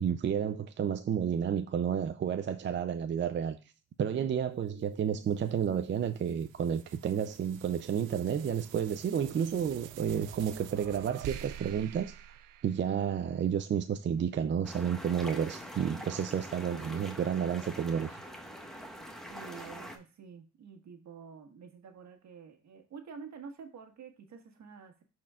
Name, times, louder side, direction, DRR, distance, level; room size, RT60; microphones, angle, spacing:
voice 1, 0.0-3.6 4.0-12.1 12.6-18.2, right 8 dB, 40° right, 0.5 m, -31 dB
sound 1, 4.8-13.4, right 11 dB, 80° right, 0.6 m, -48 dB
sound 2, 14.6-20.0, equal, ahead, 1.4 m, -44 dB
voice 2, 19.3-25.0, right 6 dB, 65° right, 1.6 m, -49 dB
12.0 x 4.4 x 2.4 m
cardioid pair, 90°, 30 cm